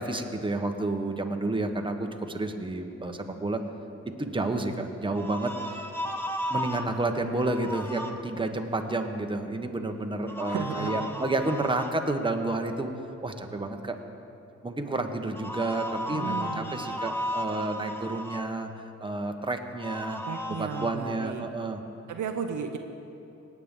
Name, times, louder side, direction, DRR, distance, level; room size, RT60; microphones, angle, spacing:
voice 1, 0.0-3.6 4.2-5.9 6.5-12.9 13.2-14.0 14.6-20.2 20.5-21.8, right 2 dB, 15° right, 4 dB, 1.1 m, -30 dB
sound 1, 5.1-6.9 7.4-8.1 10.3-11.9 15.4-18.4 19.8-20.9, equal, 5° left, 1.1 m, -34 dB
voice 2, 10.3-11.1 16.1-17.0 20.3-21.5 22.1-22.8, right 7 dB, 70° right, 6 dB, 0.8 m, -35 dB
18.5 x 8.3 x 3.8 m, 2.9 s
supercardioid pair, 60°, 32 cm